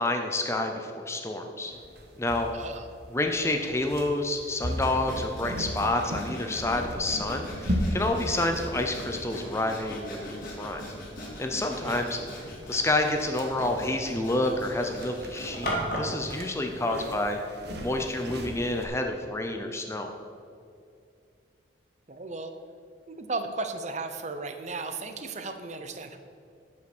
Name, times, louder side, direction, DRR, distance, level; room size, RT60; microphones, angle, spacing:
voice 1, 0.0-1.7 2.2-2.5 3.1-10.8 11.4-12.2 12.7-17.4 17.8-20.1, left 2 dB, 15° left, 4 dB, 0.6 m, -29 dB
sound 1, 1.7-18.9, equal, 55° right, 1.2 m, -38 dB
voice 2, 2.5-2.9 11.8-12.1 16.9-17.1 22.1-22.5 23.1-26.2, right 3 dB, 35° right, 8 dB, 0.8 m, -35 dB
Sawing, 4.8-16.2, equal, 45° left, 2.7 m, -39 dB
12.5 x 6.0 x 6.1 m, 2.5 s
head